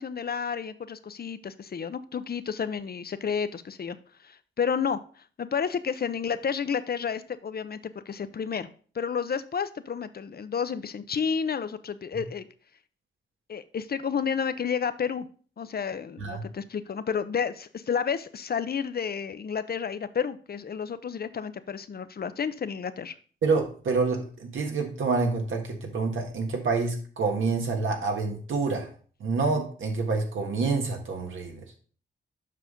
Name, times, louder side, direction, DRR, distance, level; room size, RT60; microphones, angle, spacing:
voice 1, 0.0-4.0 4.2-5.0 5.4-8.7 8.9-12.5 13.5-15.3 15.6-23.1, left 6 dB, 50° left, 13 dB, 0.6 m, -31 dB
voice 2, 23.4-28.9 29.2-31.6, right 4 dB, 80° right, 2 dB, 1.6 m, -27 dB
7.5 x 5.6 x 3.7 m, 0.42 s
cardioid pair, 60°, 20 cm